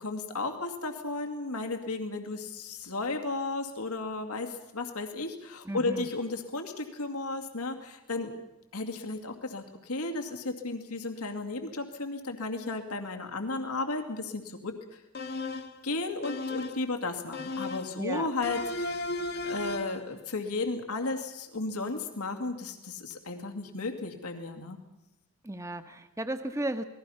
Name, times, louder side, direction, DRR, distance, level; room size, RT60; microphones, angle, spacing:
voice 1, 0.0-8.3 8.7-14.7 15.8-19.0 19.4-24.8, left 3 dB, 90° left, 4 dB, 2.4 m, -34 dB
voice 2, 5.6-6.1 18.0-18.3 25.4-26.8, right 1 dB, 15° right, 9 dB, 1.2 m, -34 dB
sound 1, 15.1-15.8 16.2-16.9 17.3-18.0 18.4-20.1, left 2 dB, 45° left, 1.3 m, -35 dB
28.0 x 20.0 x 5.7 m, 0.95 s
head